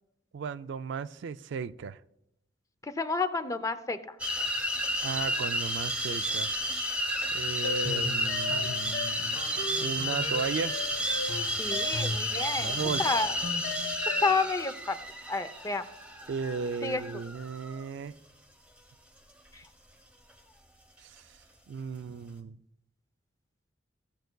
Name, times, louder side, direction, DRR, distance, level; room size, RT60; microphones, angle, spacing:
voice 1, 0.3-2.0 5.0-6.5 7.3-9.4 9.8-10.7 12.6-13.0 16.3-18.1 21.0-21.2 21.7-22.6, right 5 dB, 65° right, 0.3 m, -35 dB
voice 2, 2.8-4.2 11.6-13.4 14.2-15.0 15.3-15.8 16.8-17.0 19.5-19.6, left 3 dB, 15° left, 0.5 m, -30 dB
sound 1, 4.2-17.8, equal, 5° right, 0.8 m, -32 dB
sound 2, 7.6-14.5, left 3 dB, 85° left, 1.0 m, -37 dB
16.0 x 7.8 x 2.2 m
head